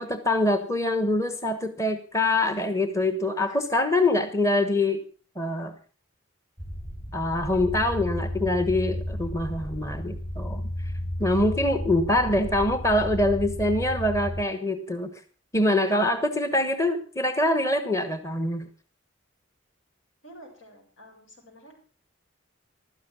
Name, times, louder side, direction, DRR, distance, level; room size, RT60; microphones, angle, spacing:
voice 1, 0.0-5.0 5.4-5.7 7.1-10.6 11.2-15.1 15.5-18.7, left 1 dB, 15° left, 10 dB, 1.1 m, -24 dB
sound 1, 6.6-14.4, equal, 35° left, 5.7 m, -33 dB
voice 2, 20.2-21.8, right 1 dB, 80° left, 2 dB, 7.5 m, -49 dB
15.5 x 12.5 x 6.2 m, 0.41 s
head